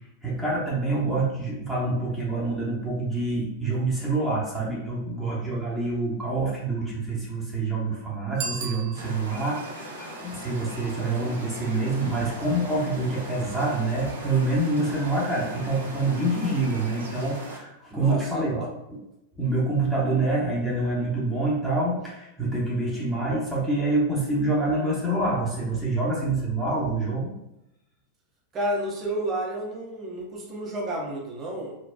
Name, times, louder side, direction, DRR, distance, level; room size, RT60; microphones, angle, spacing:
voice 1, 0.2-18.6 19.3-27.3, right 2 dB, ahead, -7 dB, 1.0 m, -26 dB
Bicycle bell, 8.3-9.5, right 5 dB, 50° right, 0.4 m, -35 dB
sound 1, 8.9-17.6, right 1 dB, 75° right, 0.7 m, -39 dB
voice 2, 17.9-18.7 28.5-31.8, right 1 dB, 25° right, -1 dB, 0.7 m, -31 dB
4.0 x 2.2 x 2.3 m, 0.88 s
figure-of-eight pair, 90°, 0 cm